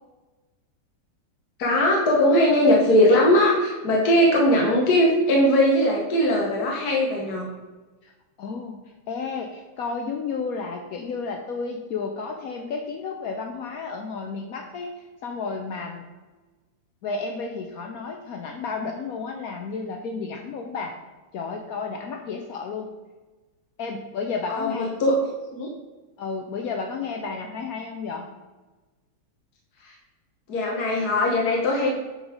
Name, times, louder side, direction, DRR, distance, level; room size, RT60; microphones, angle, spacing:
voice 1, 1.6-7.5 24.5-25.2 25.5-25.7 29.8-29.9 30.5-31.9, left 1 dB, 55° left, -2 dB, 1.4 m, -20 dB
voice 2, 8.4-16.1 17.0-21.0 21.3-22.9 23.8-24.9 26.2-28.3, left 4 dB, 75° left, 3 dB, 0.8 m, -32 dB
7.8 x 4.1 x 5.0 m, 1.2 s
omnidirectional pair, 2.3 m